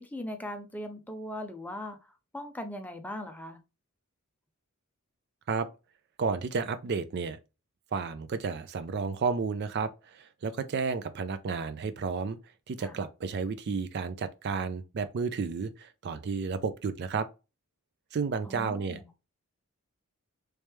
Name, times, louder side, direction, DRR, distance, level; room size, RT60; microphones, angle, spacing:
voice 1, 0.0-3.6 12.8-13.0 18.4-19.1, left 1 dB, 5° left, 0.5 m, -40 dB
voice 2, 6.2-7.4 7.9-12.4 12.7-17.3 18.1-19.0, right 5 dB, 50° right, 0.3 m, -32 dB
3.1 x 3.1 x 3.3 m
head